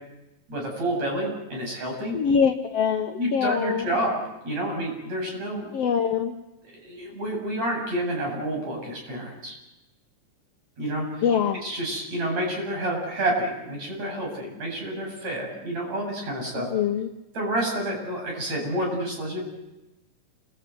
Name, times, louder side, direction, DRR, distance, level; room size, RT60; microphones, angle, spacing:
voice 1, 0.5-2.2 3.2-4.2 4.4-5.7 6.7-9.5 10.8-11.3 11.6-16.7 17.3-19.4, right 1 dB, 50° right, 0 dB, 9.3 m, -29 dB
voice 2, 2.1-4.0 5.7-6.3 11.2-11.6 16.7-17.1, left 7 dB, 60° left, 5 dB, 1.8 m, -24 dB
28.5 x 21.0 x 9.5 m, 0.97 s
omnidirectional pair, 3.9 m